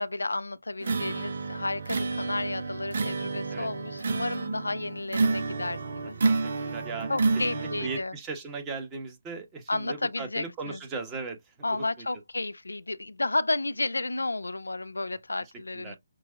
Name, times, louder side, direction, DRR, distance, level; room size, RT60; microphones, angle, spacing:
voice 1, 0.0-6.2 7.1-8.1 9.7-10.8 11.6-16.0, left 2 dB, 85° left, 0.3 m, -32 dB
sound 1, 0.8-8.0, right 3 dB, 60° right, 0.7 m, -29 dB
voice 2, 6.3-7.2 7.5-11.5 12.0-12.1 15.7-16.0, right 4 dB, 20° right, 1.3 m, -38 dB
6.0 x 2.4 x 2.7 m
figure-of-eight pair, 145°, 0 cm